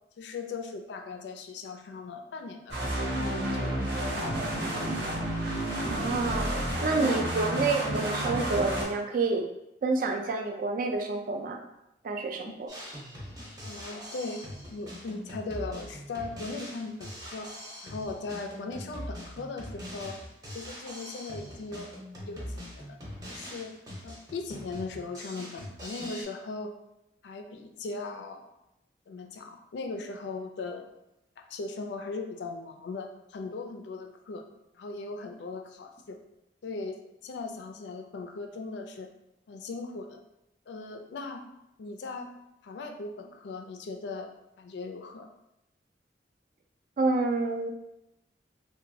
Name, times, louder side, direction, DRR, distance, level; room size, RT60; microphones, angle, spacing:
voice 1, 0.2-3.8 4.0-4.6 6.9-7.1 12.4-12.5 13.6-14.4 14.7-17.5 17.8-20.2 20.5-21.9 22.3-23.0 23.3-23.7 24.0-26.7 27.2-28.4 29.1-30.8 31.4-34.4 34.7-36.2 36.6-39.1 39.5-40.2 40.7-41.4 41.8-42.3 42.6-44.3 44.6-45.3, left 3 dB, 75° left, 5 dB, 0.3 m, -38 dB
sound 1, 2.7-8.8, right 1 dB, 75° right, 0.8 m, -30 dB
voice 2, 5.9-6.6 6.8-9.5 9.8-11.6 12.0-12.7 47.0-47.7, right 3 dB, 50° right, 4 dB, 0.3 m, -28 dB
Drum kit, 12.7-26.2, equal, 20° right, 0.7 m, -42 dB
3.0 x 2.2 x 2.6 m, 0.87 s
head